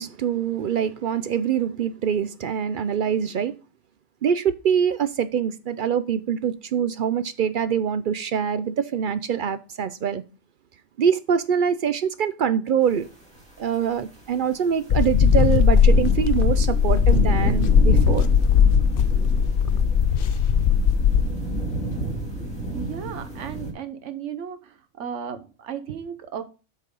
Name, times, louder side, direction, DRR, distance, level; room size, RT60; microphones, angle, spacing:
voice 1, 0.0-3.5 4.2-10.2 11.0-13.1 13.6-18.3, right 8 dB, 60° right, 0.5 m, -24 dB
sound 1, 13.4-13.5 14.0-23.7, right 2 dB, 5° left, 2.2 m, -30 dB
sound 2, 14.9-21.3, left 7 dB, 55° left, 0.7 m, -18 dB
voice 2, 22.7-26.4, right 8 dB, 80° right, 1.2 m, -35 dB
8.1 x 4.5 x 5.2 m
omnidirectional pair, 1.2 m